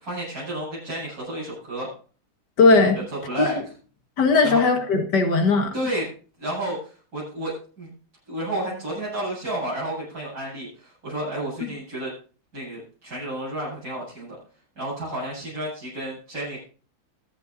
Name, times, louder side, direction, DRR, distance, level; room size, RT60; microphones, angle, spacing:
voice 1, 0.0-1.9 2.9-3.6 4.4-4.6 5.7-6.0 6.4-7.9 8.3-12.1 12.5-14.4 14.8-16.6, right 1 dB, 60° right, -8 dB, 8.6 m, -31 dB
voice 2, 2.6-3.0 3.4-3.5 4.2-5.7, left 3 dB, 85° left, 5 dB, 2.3 m, -18 dB
22.5 x 8.5 x 2.7 m, 0.37 s
omnidirectional pair, 1.8 m